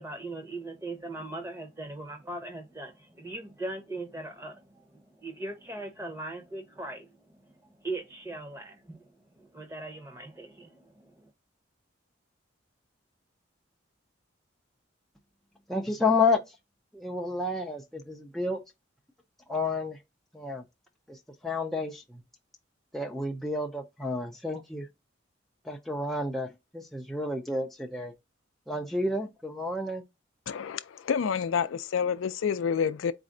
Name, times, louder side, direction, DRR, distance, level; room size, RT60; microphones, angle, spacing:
voice 1, 0.0-11.3, right 2 dB, 15° right, 0.8 m, -40 dB
voice 2, 15.7-16.6 16.9-18.6 19.5-20.0 20.3-20.6 21.1-22.2 22.9-24.9 25.6-26.5 26.7-28.1 28.7-30.0, left 3 dB, ahead, 0.4 m, -30 dB
voice 3, 30.5-33.1, left 7 dB, 90° left, 0.4 m, -28 dB
4.2 x 2.5 x 3.7 m
head